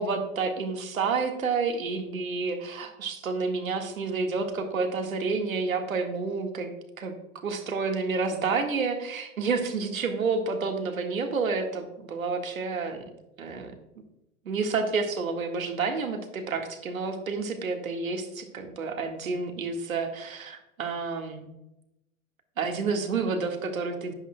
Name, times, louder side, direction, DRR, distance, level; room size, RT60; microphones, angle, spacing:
voice 1, 0.0-6.7 7.0-7.1 7.4-13.0 13.4-13.7 14.4-21.5 22.6-24.1, right 4 dB, 80° right, 5 dB, 1.8 m, -29 dB
11.0 x 10.5 x 2.3 m, 0.89 s
hypercardioid pair, 115°, 40 cm